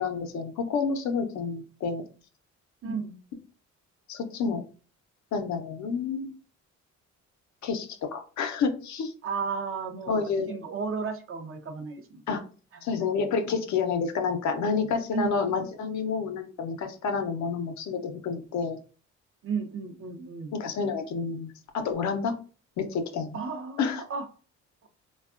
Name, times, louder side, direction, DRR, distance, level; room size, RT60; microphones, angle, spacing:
voice 1, 0.0-2.0 4.1-4.6 5.3-6.3 7.6-9.1 10.1-10.6 12.3-12.4 12.8-18.8 20.5-22.3 22.8-23.4 23.8-24.0, left 5 dB, 70° left, 6 dB, 0.6 m, -29 dB
voice 2, 2.8-3.2 9.2-12.2 13.0-13.1 15.1-15.5 19.4-20.5 23.3-24.3, right 5 dB, 45° right, 7 dB, 0.6 m, -34 dB
3.3 x 2.2 x 2.4 m, 0.38 s
cardioid pair, 90°, 30 cm